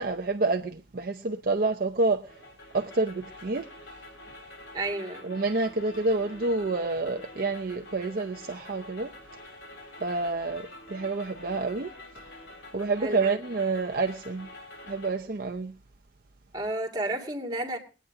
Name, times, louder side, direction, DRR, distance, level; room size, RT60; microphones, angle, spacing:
voice 1, 0.0-2.3 2.7-3.7 5.2-9.1 10.0-11.9 12.7-14.5 14.9-15.7, right 3 dB, 50° right, 0.7 m, -28 dB
sound 1, 2.3-15.1, left 1 dB, 80° left, 4.3 m, -47 dB
voice 2, 4.7-5.3 13.0-13.3 16.5-17.8, right 1 dB, 25° right, 2.3 m, -31 dB
21.5 x 9.4 x 3.7 m
head